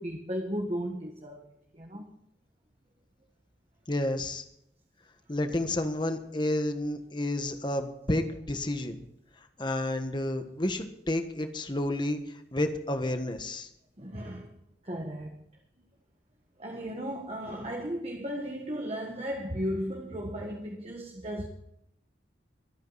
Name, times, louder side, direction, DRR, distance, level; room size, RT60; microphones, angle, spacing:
voice 1, 0.0-2.1 14.0-14.5 14.8-15.4 16.6-21.5, equal, 35° right, 1.5 m, -35 dB
voice 2, 3.9-4.4 5.3-9.0 9.6-12.2 12.5-13.7, left 1 dB, 25° left, 1.4 m, -30 dB
24.0 x 9.1 x 4.1 m
head